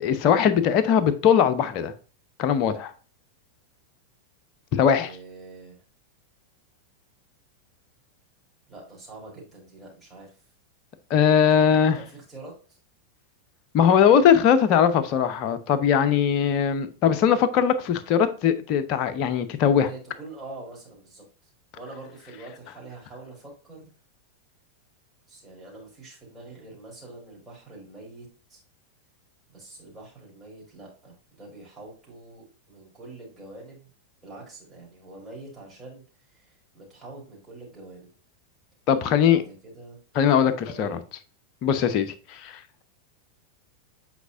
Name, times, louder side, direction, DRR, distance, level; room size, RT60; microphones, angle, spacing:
voice 1, 0.0-1.9 2.4-2.9 4.7-5.1 11.1-12.0 13.7-19.9 38.9-39.4 40.1-41.0 41.6-42.8, left 8 dB, 40° left, 0.8 m, -20 dB
voice 2, 4.8-5.8 8.7-10.4 11.5-11.6 11.9-12.8 19.9-21.2 21.7-23.9 25.3-28.6 29.5-33.9 34.2-36.0 36.3-38.1 39.2-40.0 40.4-41.0, right 2 dB, 10° right, 3.4 m, -45 dB
8.2 x 4.4 x 2.6 m
figure-of-eight pair, 90°, 0 cm